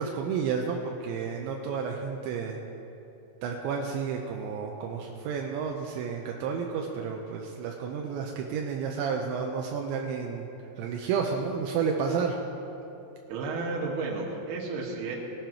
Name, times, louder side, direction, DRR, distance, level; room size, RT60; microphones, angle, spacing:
voice 1, 0.0-2.6 3.4-10.5 10.8-12.4, right 6 dB, 80° right, 0 dB, 2.8 m, -31 dB
voice 2, 13.3-15.2, right 3 dB, 60° right, -2 dB, 3.2 m, -32 dB
20.0 x 11.5 x 3.0 m, 2.9 s
omnidirectional pair, 5.9 m